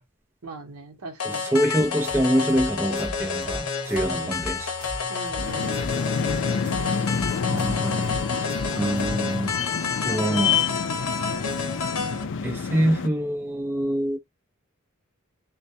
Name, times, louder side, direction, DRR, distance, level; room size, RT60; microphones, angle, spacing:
voice 1, 0.4-1.5 4.1-4.4 5.1-5.8 10.0-10.7 11.3-11.6, right 3 dB, 85° right, 0.8 m, -38 dB
sound 1, 1.2-12.2, left 5 dB, 80° left, 0.7 m, -30 dB
voice 2, 1.2-4.8 7.4-8.5 8.7-9.6 10.0-10.6 12.4-14.2, equal, 10° right, 0.5 m, -25 dB
sound 2, 1.9-9.1, left 1 dB, 35° right, 1.0 m, -38 dB
sound 3, 5.4-13.1, left 6 dB, 60° left, 0.3 m, -28 dB
2.2 x 2.2 x 2.7 m
head